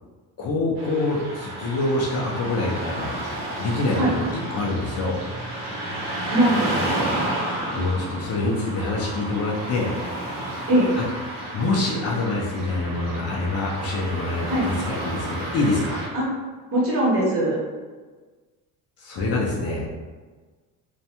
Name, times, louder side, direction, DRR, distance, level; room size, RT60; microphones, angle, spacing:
voice 1, 0.4-3.1 3.6-4.2 4.5-5.2 7.7-9.9 11.0-11.1 11.5-16.0 19.0-19.9, left 2 dB, 40° left, -4 dB, 0.5 m, -25 dB
Car passing by / Traffic noise roadway noise, 0.8-16.1, right 1 dB, 70° right, 0.8 m, -31 dB
voice 2, 6.3-7.2 10.7-10.9 14.5-14.7 16.1-16.3 16.7-17.6, right 1 dB, 40° right, -5 dB, 0.8 m, -21 dB
2.5 x 2.2 x 2.8 m, 1.4 s
cardioid pair, 155°, 37 cm